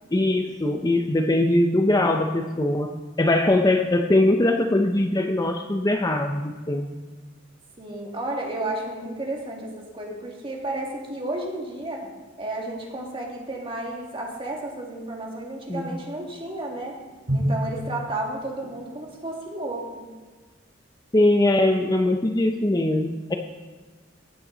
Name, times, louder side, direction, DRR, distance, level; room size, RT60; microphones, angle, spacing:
voice 1, 0.1-2.9 3.2-6.9 15.7-16.0 21.1-23.4, left 1 dB, 20° left, 4 dB, 0.6 m, -21 dB
voice 2, 7.8-12.1 12.4-17.0 17.3-20.1, right 2 dB, 30° right, -1 dB, 2.2 m, -32 dB
Drum, 17.3-19.0, equal, 70° right, 3.5 m, -29 dB
15.0 x 9.1 x 3.9 m, 1.4 s
head